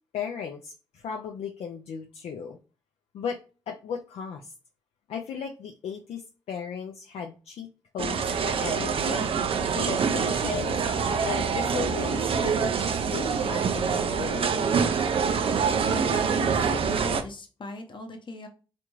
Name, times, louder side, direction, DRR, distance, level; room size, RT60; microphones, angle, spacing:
voice 1, 0.1-2.6 3.1-3.4 3.7-4.5 5.1-6.2 6.5-7.7 7.9-9.3 9.7-10.8 11.2-14.6, left 7 dB, 65° left, 2 dB, 0.4 m, -36 dB
sound 1, 8.0-17.2, right 6 dB, 55° right, 0.4 m, -25 dB
voice 2, 15.8-18.5, left 2 dB, 45° left, 4 dB, 0.9 m, -39 dB
3.4 x 2.5 x 3.0 m, 0.34 s
hypercardioid pair, 40°, 11 cm